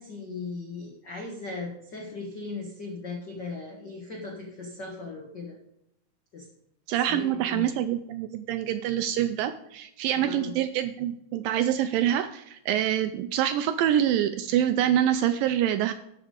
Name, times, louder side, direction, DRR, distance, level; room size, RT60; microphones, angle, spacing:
voice 1, 0.0-5.6 6.3-6.5 6.9-7.7 10.3-10.5, left 3 dB, 75° left, 0 dB, 1.0 m, -38 dB
voice 2, 6.9-15.9, right 11 dB, 80° right, 10 dB, 2.0 m, -26 dB
13.0 x 5.9 x 5.1 m, 0.79 s
omnidirectional pair, 4.4 m